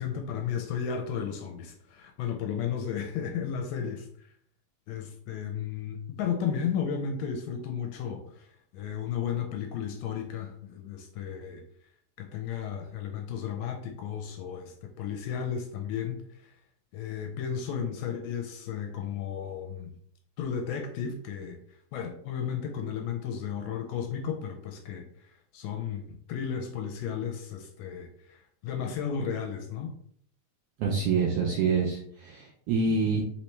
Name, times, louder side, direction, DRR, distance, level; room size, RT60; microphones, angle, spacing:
voice 1, 0.0-4.3 4.9-11.6 12.2-16.5 16.9-19.9 20.4-29.9, left 7 dB, 80° left, 4 dB, 1.6 m, -34 dB
voice 2, 30.8-33.2, right 4 dB, 85° right, -1 dB, 1.3 m, -26 dB
4.3 x 3.3 x 3.1 m, 0.64 s
omnidirectional pair, 3.3 m